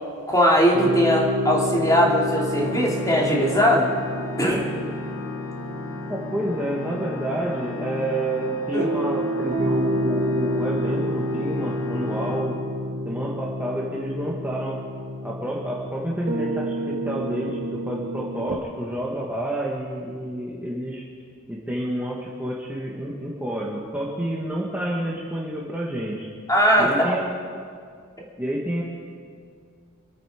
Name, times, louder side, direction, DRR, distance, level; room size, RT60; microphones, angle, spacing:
voice 1, 0.3-3.9 4.4-4.7 8.7-8.9 26.5-27.2, equal, 15° left, -2 dB, 2.6 m, -20 dB
sound 1, 0.7-18.6, equal, 40° right, 1.1 m, -29 dB
Organ, 2.3-13.1, left 3 dB, 70° left, 1.3 m, -36 dB
voice 2, 6.1-12.6 13.0-14.8 15.2-21.0 21.5-26.3 26.8-27.4 28.4-28.8, right 1 dB, 5° right, -4 dB, 1.4 m, -29 dB
26.0 x 9.1 x 4.9 m, 2.1 s
head